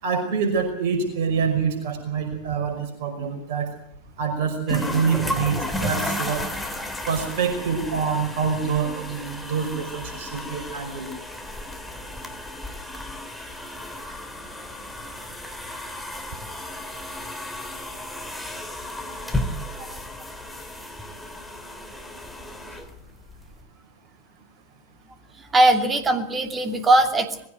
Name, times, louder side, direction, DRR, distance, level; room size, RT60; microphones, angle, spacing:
voice 1, 0.0-3.7 4.2-6.4 7.1-11.1, right 6 dB, 50° right, 5 dB, 5.6 m, -26 dB
sound 1, 4.7-23.6, left 1 dB, 5° left, 3.2 m, -33 dB
voice 2, 25.5-27.5, right 1 dB, 20° right, 7 dB, 2.6 m, -20 dB
21.0 x 16.5 x 7.9 m, 0.68 s
figure-of-eight pair, 90°, 0 cm